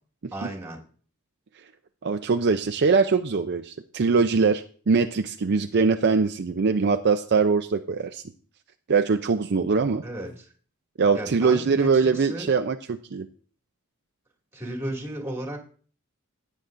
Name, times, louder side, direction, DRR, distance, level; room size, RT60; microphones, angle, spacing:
voice 1, 0.3-0.8 10.0-10.5 11.1-12.5 14.5-15.6, right 1 dB, 15° right, -1 dB, 2.3 m, -34 dB
voice 2, 2.0-8.2 8.9-10.0 11.0-13.3, right 4 dB, 55° right, 7 dB, 0.5 m, -22 dB
15.5 x 9.2 x 2.6 m, 0.43 s
head